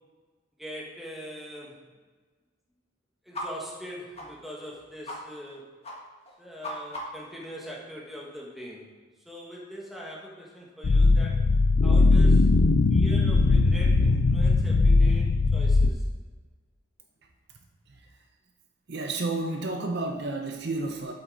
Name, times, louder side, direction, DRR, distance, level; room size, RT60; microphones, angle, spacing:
voice 1, 0.6-1.8 3.2-5.7 6.4-8.9 9.2-11.5 11.8-12.6 12.9-16.0, equal, ahead, -4 dB, 1.6 m, -42 dB
sound 1, 3.3-3.5 3.7-3.8 4.1-4.3 4.6-4.7 5.0-5.2 5.4-5.6 5.8-5.9 6.2-7.3, left 1 dB, 30° left, 1.5 m, -37 dB
sound 2, 10.8-15.9, left 3 dB, 65° left, 0.4 m, -20 dB
voice 2, 18.9-21.1, right 2 dB, 55° right, 4 dB, 0.7 m, -31 dB
8.1 x 7.8 x 3.9 m, 1.4 s
head